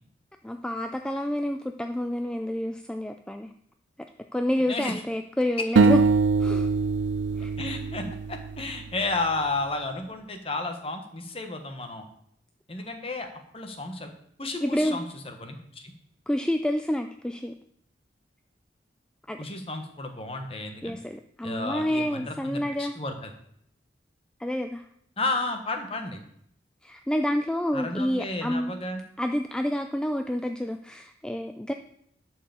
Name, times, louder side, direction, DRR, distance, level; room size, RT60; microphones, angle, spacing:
voice 1, 0.4-3.5 4.3-6.0 6.4-6.7 7.4-7.5 14.6-15.0 16.3-17.5 19.3-19.4 20.8-22.9 24.4-24.9 26.8-28.7 29.2-31.7, left 1 dB, 5° left, 6 dB, 0.3 m, -28 dB
voice 2, 4.7-5.0 5.6-5.7 7.4-12.0 12.7-14.1 14.4-15.9 19.4-21.0 21.4-23.3 25.2-26.2 27.7-29.0, left 2 dB, 30° left, 5 dB, 1.2 m, -32 dB
sound 1, 5.8-9.0, right 4 dB, 85° right, 0.4 m, -23 dB
11.0 x 4.7 x 6.9 m, 0.72 s
head